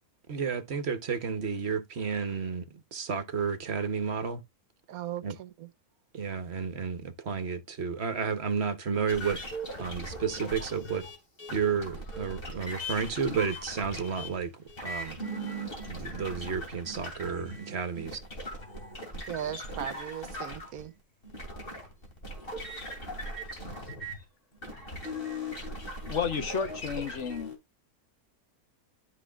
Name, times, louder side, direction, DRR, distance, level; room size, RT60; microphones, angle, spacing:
voice 1, 0.3-2.6 2.9-4.4 5.2-5.3 6.1-9.4 9.8-11.1 11.5-14.5 14.8-15.2 15.8-18.2, right 6 dB, 50° right, 1.2 m, -31 dB
voice 2, 4.9-5.7 19.3-20.9, right 10 dB, 85° right, 1.3 m, -37 dB
sound 1, 9.1-24.2 24.6-27.6, equal, 40° left, 2.9 m, -39 dB
voice 3, 26.1-27.5, left 6 dB, 55° left, 1.4 m, -31 dB
12.5 x 4.7 x 2.4 m
omnidirectional pair, 1.5 m